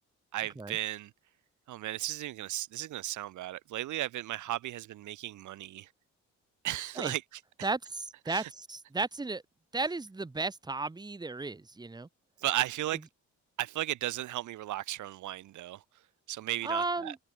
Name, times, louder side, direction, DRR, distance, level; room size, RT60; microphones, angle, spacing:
voice 1, 0.3-1.1 1.7-5.9 6.6-7.4 8.3-8.5 12.4-13.0 13.6-15.8 16.3-17.1, right 14 dB, 75° right, 1.1 m, -35 dB
voice 2, 7.6-9.4 9.7-12.1 16.6-17.2, right 3 dB, 15° right, 1.2 m, -34 dB
cardioid pair, 90°, 30 cm